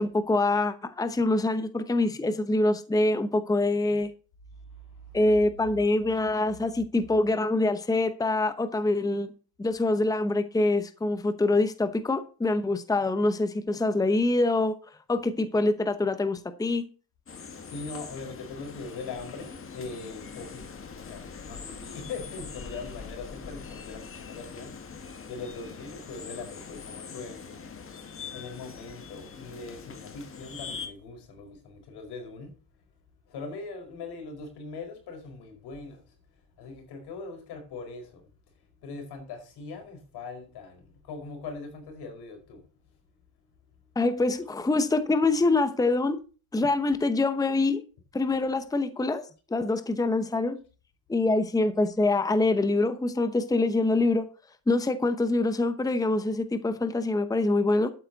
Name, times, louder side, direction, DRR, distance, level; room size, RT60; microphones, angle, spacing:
voice 1, 0.0-4.1 5.1-9.3 9.6-14.7 15.1-16.8 44.0-46.2 46.5-47.8 48.1-49.2 49.5-50.6 51.1-54.2 54.7-57.9, left 2 dB, 10° left, 0.9 m, -25 dB
voice 2, 4.7-5.2 17.6-20.6 21.0-27.8 28.3-32.5 33.3-36.1 36.6-38.2 38.8-42.6, left 4 dB, 80° left, 4.9 m, -41 dB
sound 1, 17.3-30.9, left 5 dB, 35° left, 1.9 m, -42 dB
12.5 x 8.8 x 4.0 m
cardioid pair, 135°, 39 cm